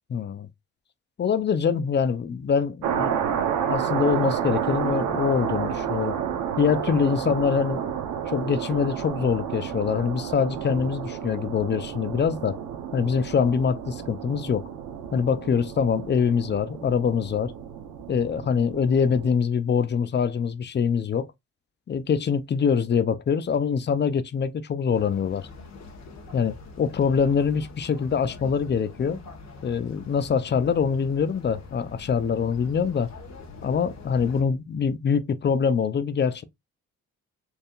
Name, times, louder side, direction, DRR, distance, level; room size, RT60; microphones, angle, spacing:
voice 1, 0.1-0.5 1.2-3.2 3.7-6.2 6.6-7.8 8.3-12.6 12.9-14.7 15.1-17.5 18.1-21.3 21.9-25.5 26.3-29.2 29.6-33.1 33.6-36.4, left 6 dB, 35° left, 0.6 m, -24 dB
sound 1, 2.8-19.3, right 8 dB, 90° right, 1.1 m, -30 dB
sound 2, 24.9-34.4, left 3 dB, 60° left, 1.6 m, -44 dB
4.5 x 3.4 x 2.5 m
cardioid pair, 90°, 30 cm